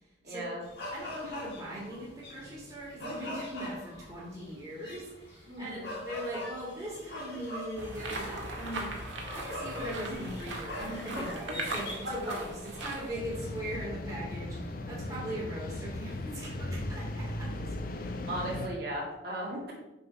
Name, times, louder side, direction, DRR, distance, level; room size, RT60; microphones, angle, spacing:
voice 1, 0.2-0.6 5.5-5.9 11.1-11.3 12.2-12.3 18.3-19.7, right 1 dB, 55° right, -4 dB, 2.3 m, -36 dB
sound 1, 0.6-13.8, left 1 dB, 65° left, 1.6 m, -43 dB
voice 2, 0.9-8.9 9.3-17.9, equal, 20° right, -6 dB, 1.7 m, -40 dB
sound 2, 7.8-13.1, right 2 dB, 90° right, 1.3 m, -39 dB
sound 3, 13.1-18.7, left 1 dB, 50° left, 0.5 m, -37 dB
6.9 x 3.5 x 5.1 m, 0.95 s
head